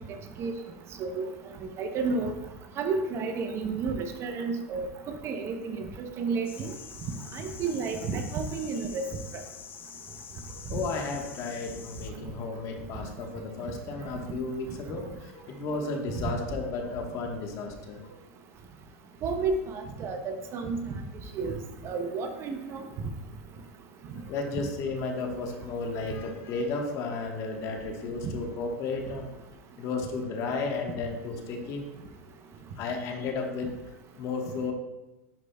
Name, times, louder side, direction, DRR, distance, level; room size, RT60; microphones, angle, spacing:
voice 1, 1.6-2.3 2.8-6.7 7.3-9.1 9.3-9.4 19.2-21.0 21.3-21.6 21.8-22.8, right 4 dB, 35° right, 6 dB, 0.7 m, -31 dB
sound 1, 6.4-12.1, left 8 dB, 25° left, 0.5 m, -46 dB
voice 2, 10.5-18.1 24.1-29.3 29.8-31.9 32.8-34.7, left 3 dB, 45° left, 3 dB, 1.2 m, -33 dB
10.5 x 4.8 x 2.3 m, 1.0 s
supercardioid pair, 130°, 8 cm